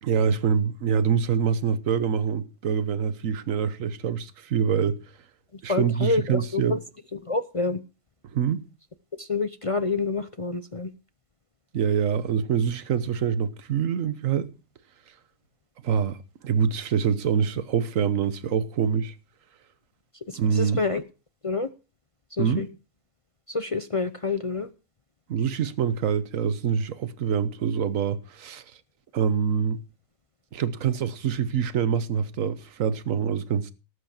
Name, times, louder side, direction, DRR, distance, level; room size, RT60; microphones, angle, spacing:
voice 1, 0.0-5.0 5.6-6.8 8.3-8.7 11.7-14.5 15.8-16.2 16.4-19.1 20.3-20.8 22.4-22.7 25.3-28.6 29.1-29.8 30.5-33.7, right 7 dB, 60° right, 1.3 m, -25 dB
voice 2, 5.7-6.8 7.3-7.8 9.2-10.9 20.3-21.0 21.4-21.7 22.4-22.7 23.5-24.7, left 3 dB, 50° left, 0.4 m, -27 dB
18.5 x 8.3 x 4.4 m
omnidirectional pair, 1.7 m